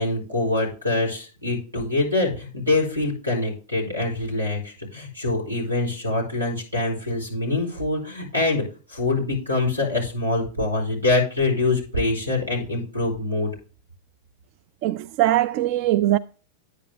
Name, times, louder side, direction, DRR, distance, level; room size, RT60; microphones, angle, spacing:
voice 1, 0.0-13.5, left 2 dB, 85° right, 4.9 m, -24 dB
voice 2, 14.8-16.2, right 14 dB, 45° right, 0.3 m, -21 dB
9.8 x 9.1 x 3.5 m
figure-of-eight pair, 90°, 0 cm